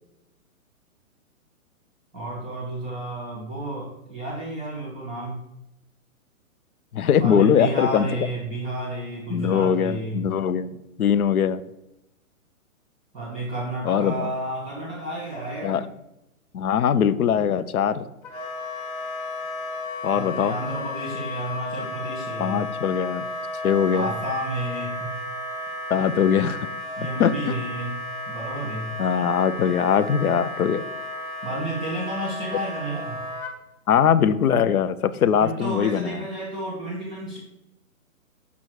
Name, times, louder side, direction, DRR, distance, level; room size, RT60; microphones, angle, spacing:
voice 1, 2.1-5.4 7.2-10.3 13.1-15.9 20.1-22.7 23.9-25.2 26.9-28.9 31.4-33.2 35.4-37.4, right 1 dB, 5° right, -10 dB, 0.4 m, -31 dB
voice 2, 6.9-8.1 9.3-11.6 13.9-14.3 15.6-15.9 16.5-18.0 20.0-20.5 22.4-23.3 23.6-24.1 25.9-26.7 27.2-27.3 29.0-30.8 33.9-36.2, left 8 dB, 85° left, 13 dB, 0.7 m, -21 dB
Wind instrument woodwind instrument, 18.2-33.5, left 2 dB, 20° left, 0.9 m, -33 dB
6.2 x 5.5 x 4.6 m, 0.91 s
hypercardioid pair, 155°, 42 cm